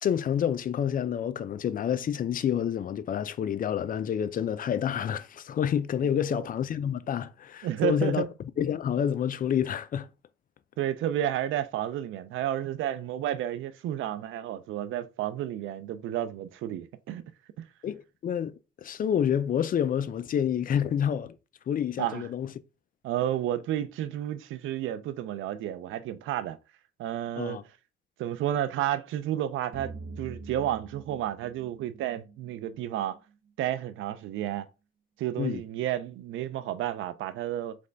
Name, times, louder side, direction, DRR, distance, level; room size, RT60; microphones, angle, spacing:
voice 1, 0.0-8.2 8.6-10.1 17.8-21.4 21.7-22.5 27.4-27.6 35.4-35.6, left 9 dB, 45° left, 0.4 m, -28 dB
voice 2, 6.0-6.5 7.6-8.3 10.8-17.2 22.0-22.2 23.0-26.6 27.0-27.6 28.2-33.2 33.6-34.7 35.2-37.8, right 11 dB, 80° right, 0.5 m, -31 dB
sound 1, 29.7-33.0, right 3 dB, 50° right, 1.2 m, -44 dB
3.4 x 3.2 x 3.9 m
cardioid pair, 90°, 20 cm